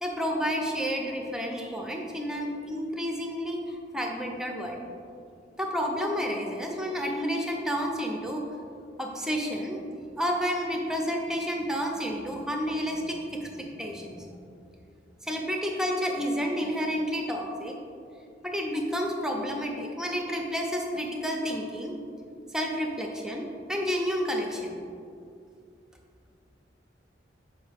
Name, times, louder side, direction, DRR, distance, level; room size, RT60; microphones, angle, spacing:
voice 1, 0.0-4.8 5.6-8.4 9.0-9.8 10.2-14.3 15.2-17.7 18.4-21.9 22.5-24.7, equal, 5° right, 1 dB, 0.5 m, -30 dB
6.2 x 4.8 x 3.4 m, 2.4 s
head